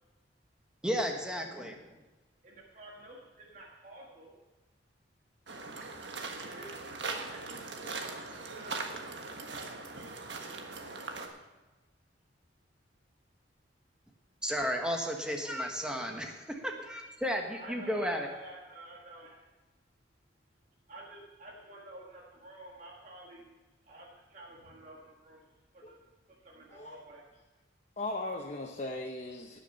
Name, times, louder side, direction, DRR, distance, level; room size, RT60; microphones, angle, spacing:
voice 1, 0.8-1.8 14.4-18.3, equal, 5° right, 2 dB, 1.4 m, -33 dB
voice 2, 2.4-4.4 6.4-7.4 7.7-8.9 9.3-9.7 10.0-10.1 17.6-19.4 20.9-23.5 23.9-25.4 25.7-26.0 26.4-27.2, right 1 dB, 40° right, -3 dB, 1.8 m, -50 dB
sound 1, 5.5-11.3, right 3 dB, 70° right, 1.5 m, -40 dB
voice 3, 26.7-27.0 28.0-29.6, left 2 dB, 40° left, 1 dB, 0.9 m, -38 dB
18.5 x 6.6 x 5.5 m, 1.2 s
head